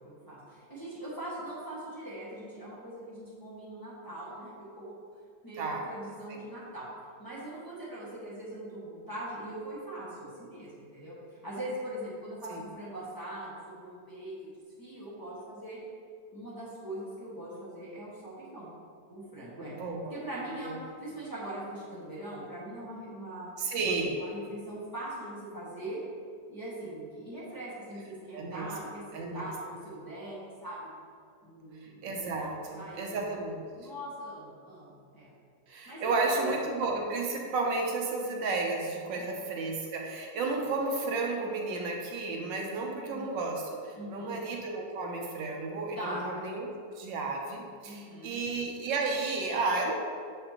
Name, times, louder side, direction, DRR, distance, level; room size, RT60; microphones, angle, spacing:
voice 1, 0.0-4.9 5.4-6.9 7.2-11.1 11.4-14.5 14.8-15.8 16.3-18.7 19.1-19.8 20.1-23.5 24.1-26.0 26.5-31.0 31.4-33.3 33.7-35.3 35.8-36.5 39.1-39.4 42.9-43.3 44.0-44.4 45.9-46.3 47.8-48.4, right 1 dB, 15° left, -9 dB, 1.2 m, -41 dB
voice 2, 19.6-20.2 20.6-20.8 23.6-24.2 28.3-28.7 29.1-29.4 32.0-33.6 35.7-49.9, right 3 dB, 75° right, 1 dB, 1.3 m, -32 dB
6.5 x 5.2 x 2.9 m, 2.2 s
omnidirectional pair, 2.0 m